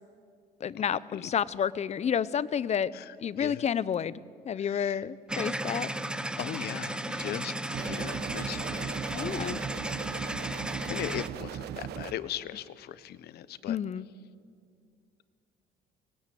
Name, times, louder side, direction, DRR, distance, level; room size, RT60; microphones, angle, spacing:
voice 1, 0.6-2.9 3.2-4.2 4.4-5.9 7.1-7.2 9.2-9.6 13.7-14.1, left 8 dB, 40° left, 18 dB, 0.8 m, -30 dB
voice 2, 2.9-3.6 4.6-5.0 6.4-9.4 10.9-13.8, left 12 dB, 70° left, 16 dB, 1.2 m, -39 dB
sound 1, 5.3-11.3, right 1 dB, 5° right, 1.1 m, -34 dB
sound 2, 7.7-12.1, right 9 dB, 75° right, 1.4 m, -38 dB
24.5 x 20.5 x 9.3 m, 2.2 s
cardioid pair, 110°, 17 cm